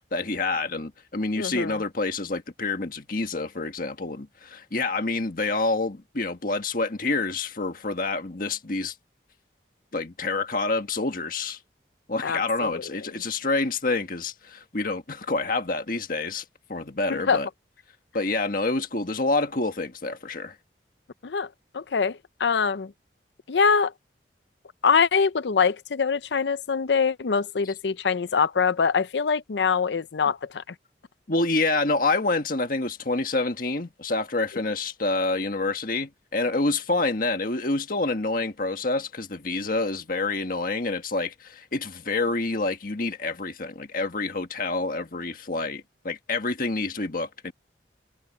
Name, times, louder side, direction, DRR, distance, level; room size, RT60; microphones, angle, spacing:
voice 1, 0.1-8.9 9.9-11.6 12.1-16.4 16.7-17.5 18.1-20.5 31.3-47.5, left 3 dB, 50° left, 1.6 m, -27 dB
voice 2, 1.4-1.8 12.2-12.8 13.1-13.2 17.1-17.4 21.2-21.5 21.7-22.9 23.5-23.9 24.8-30.7, left 5 dB, 80° left, 0.6 m, -24 dB
head